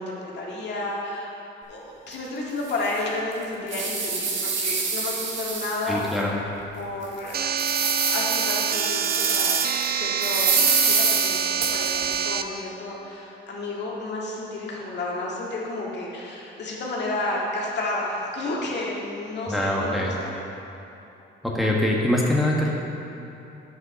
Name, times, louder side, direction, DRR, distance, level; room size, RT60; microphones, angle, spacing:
voice 1, 0.0-1.3 1.7-6.0 6.8-9.5 10.0-10.5 10.8-20.4, left 2 dB, 60° left, -4 dB, 1.9 m, -31 dB
sound 1, 2.1-2.2 2.7-2.8 3.3-6.1 6.6-6.7 7.2-9.9 10.2-12.2, right 5 dB, 70° right, 1.6 m, -26 dB
voice 2, 5.9-6.4 19.5-20.1 21.4-22.7, left 1 dB, ahead, -4 dB, 1.4 m, -23 dB
sound 2, 7.3-12.4, right 7 dB, 50° right, 0.5 m, -26 dB
8.9 x 5.6 x 6.2 m, 3.0 s
cardioid pair, 90°, 20 cm